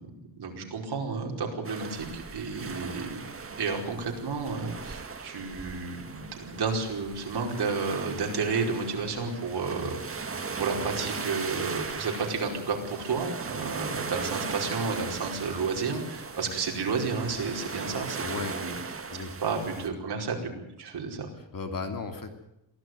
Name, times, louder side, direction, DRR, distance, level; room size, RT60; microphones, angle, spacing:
voice 1, 0.4-18.8 19.1-20.5 20.8-21.3, right 4 dB, 60° right, 1 dB, 5.1 m, -32 dB
sound 1, 1.6-19.9, right 4 dB, 30° right, 1.9 m, -38 dB
voice 2, 18.2-18.6 19.1-19.3 21.4-22.3, left 4 dB, 45° left, 6 dB, 3.0 m, -36 dB
23.0 x 16.0 x 9.4 m, 0.84 s
wide cardioid pair, 145°, 45 cm